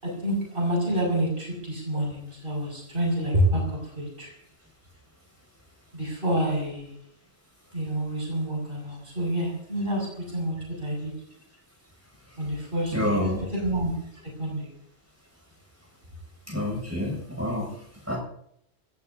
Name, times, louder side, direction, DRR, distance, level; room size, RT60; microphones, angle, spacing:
voice 1, 0.0-4.3 5.9-6.9 7.7-11.1 12.4-13.2 13.5-13.9 14.4-14.7, right 1 dB, 55° right, -1 dB, 6.4 m, -28 dB
voice 2, 12.9-13.4 16.5-17.7 18.1-18.2, left 1 dB, 15° right, -1 dB, 7.0 m, -27 dB
26.5 x 16.5 x 2.8 m, 0.71 s
omnidirectional pair, 1.1 m